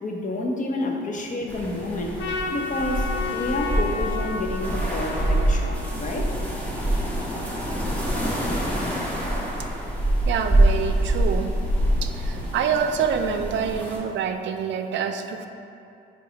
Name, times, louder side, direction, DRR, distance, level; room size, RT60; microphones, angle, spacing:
voice 1, 0.0-2.2 2.5-6.3, left 1 dB, 40° left, 1 dB, 0.9 m, -29 dB
sound 1, 1.5-14.0, right 1 dB, 10° left, 1.3 m, -25 dB
Trumpet, 2.2-6.6, left 4 dB, 70° left, 0.7 m, -32 dB
voice 2, 10.3-11.5 12.0-15.5, right 7 dB, 65° right, 7 dB, 0.5 m, -26 dB
4.8 x 4.6 x 5.2 m, 2.6 s
cardioid pair, 90°, 20 cm